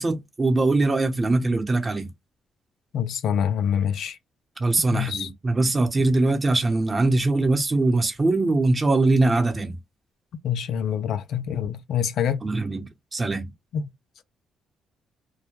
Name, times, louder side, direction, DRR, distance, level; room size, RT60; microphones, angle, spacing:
voice 1, 0.0-2.1 4.6-9.8 12.4-13.5, right 2 dB, 25° right, 0.7 m, -22 dB
voice 2, 2.9-4.2 4.9-5.3 10.4-12.4 13.7-13.9, left 8 dB, 70° left, 0.3 m, -26 dB
2.2 x 2.1 x 3.0 m
cardioid pair, 90°, 0 cm